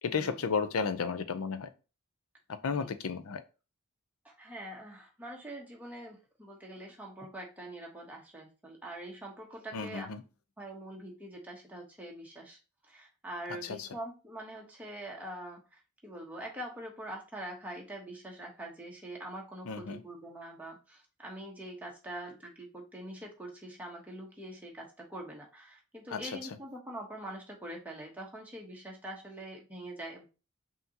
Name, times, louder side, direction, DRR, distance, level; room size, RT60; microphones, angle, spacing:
voice 1, 0.0-1.7 2.5-3.4 9.7-10.2 13.6-13.9 19.7-20.0 26.1-26.2, left 5 dB, 80° left, 11 dB, 0.5 m, -33 dB
voice 2, 4.2-10.1 10.6-30.2, right 1 dB, 5° right, -1 dB, 0.9 m, -44 dB
5.7 x 2.8 x 2.8 m, 0.32 s
head